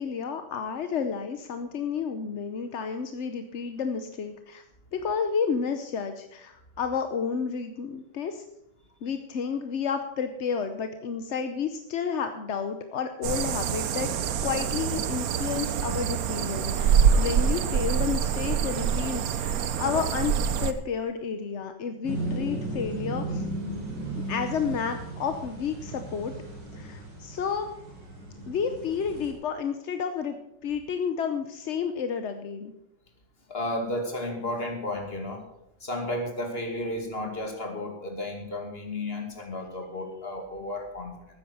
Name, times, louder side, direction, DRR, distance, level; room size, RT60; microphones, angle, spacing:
voice 1, 0.0-4.6 4.9-8.4 9.0-14.1 14.4-20.3 20.6-23.4 24.3-26.3 26.7-27.7 28.5-30.4 30.6-32.7, left 6 dB, 50° left, 8 dB, 0.9 m, -31 dB
sound 1, 13.2-20.7, right 7 dB, 60° right, 1.1 m, -25 dB
sound 2, 22.0-29.3, right 2 dB, 85° right, 4.4 m, -35 dB
voice 2, 33.5-35.5 35.8-41.3, left 1 dB, 35° left, 3 dB, 2.6 m, -33 dB
13.5 x 9.7 x 6.5 m, 0.86 s
omnidirectional pair, 1.9 m